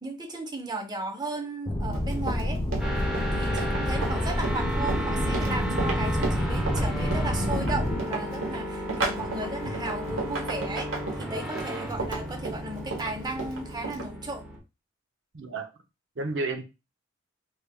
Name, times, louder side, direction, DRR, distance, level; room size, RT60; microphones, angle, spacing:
voice 1, 0.0-2.6 3.3-14.4, right 2 dB, 20° right, 4 dB, 0.7 m, -35 dB
sound 1, 1.7-8.0, left 1 dB, 20° left, 0.5 m, -28 dB
Run, 1.9-14.1, right 3 dB, 85° right, 1.0 m, -34 dB
sound 2, 2.8-14.6, equal, 5° right, 0.9 m, -34 dB
voice 2, 15.3-15.7 16.2-16.7, right 3 dB, 65° right, 5 dB, 0.7 m, -32 dB
3.3 x 3.3 x 2.3 m, 0.28 s
head